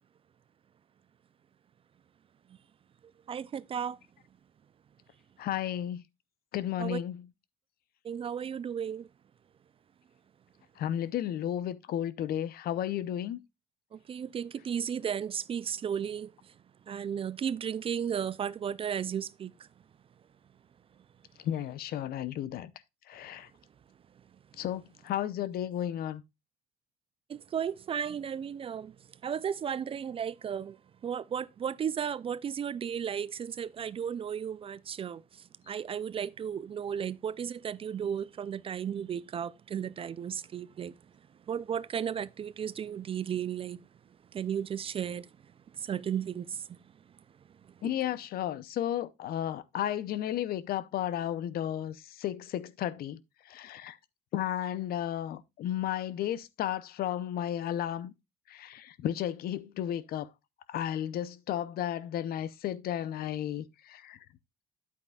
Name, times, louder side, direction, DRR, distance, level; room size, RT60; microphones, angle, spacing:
voice 1, 3.0-4.0 6.8-7.0 8.0-9.1 13.9-16.5 16.9-19.7 27.3-30.8 31.0-41.0 41.5-43.8 44.3-46.8 47.6-47.9, right 8 dB, 35° right, 0.4 m, -35 dB
voice 2, 5.4-6.0 6.5-7.2 10.8-13.4 21.4-22.7 23.1-23.5 24.6-26.2 47.8-53.2 53.5-54.0 54.3-58.1 58.5-60.3 60.7-64.2, left 11 dB, 65° left, 0.6 m, -33 dB
9.4 x 8.3 x 2.3 m
cardioid pair, 110°, 17 cm